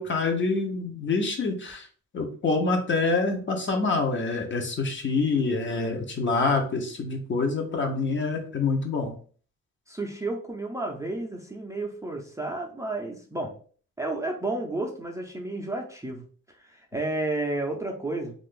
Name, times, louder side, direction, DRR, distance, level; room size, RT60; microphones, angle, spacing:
voice 1, 0.0-1.9 2.1-9.1, left 3 dB, 40° left, 4 dB, 0.8 m, -26 dB
voice 2, 9.9-13.5 14.0-16.2 16.6-18.3, right 2 dB, 10° right, 0 dB, 0.5 m, -31 dB
2.5 x 2.4 x 3.6 m, 0.43 s
cardioid pair, 90°, 30 cm